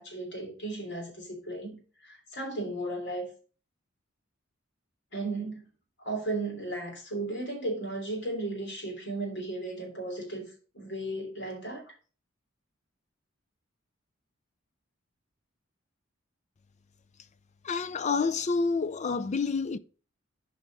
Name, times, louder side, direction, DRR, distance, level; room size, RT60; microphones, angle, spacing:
voice 1, 0.0-3.3 5.1-5.7 6.0-11.9, right 2 dB, 55° left, 3.2 m, -35 dB
voice 2, 17.6-19.8, left 4 dB, 35° left, 0.5 m, -28 dB
7.5 x 5.1 x 5.9 m
head